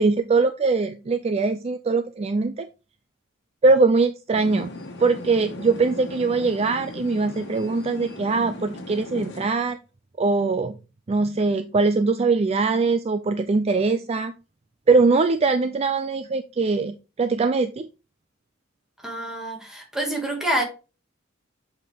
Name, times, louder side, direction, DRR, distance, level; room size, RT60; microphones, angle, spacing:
voice 1, 0.0-2.7 3.6-4.7 5.0-9.8 10.2-10.8 11.1-14.3 14.9-17.9, right 3 dB, 30° right, 0.4 m, -22 dB
sound 1, 4.3-9.5, left 1 dB, 60° left, 1.4 m, -37 dB
voice 2, 19.0-20.6, right 1 dB, 5° right, 1.9 m, -27 dB
7.6 x 4.7 x 3.5 m
head